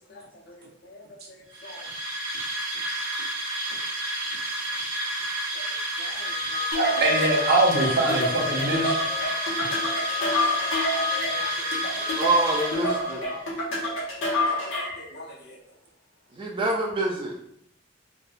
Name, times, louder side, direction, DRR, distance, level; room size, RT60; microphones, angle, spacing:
voice 1, 0.1-1.8 5.5-7.0 7.3-7.6 8.8-8.9 9.6-12.1 12.4-12.5 13.3-13.4 14.3-15.6, left 1 dB, 60° left, -1 dB, 0.7 m, -45 dB
sound 1, 1.5-13.3, right 1 dB, 85° right, 0.9 m, -31 dB
sound 2, 6.2-13.9, left 8 dB, 20° left, 0.7 m, -34 dB
sound 3, 6.7-15.1, left 1 dB, 85° left, 1.0 m, -29 dB
voice 2, 6.7-9.0 10.6-10.7 11.3-11.5, right 2 dB, 55° right, -2 dB, 0.8 m, -23 dB
voice 3, 12.2-13.2 16.3-17.4, right 2 dB, 25° right, -1 dB, 0.3 m, -25 dB
3.3 x 2.6 x 2.4 m, 0.75 s
head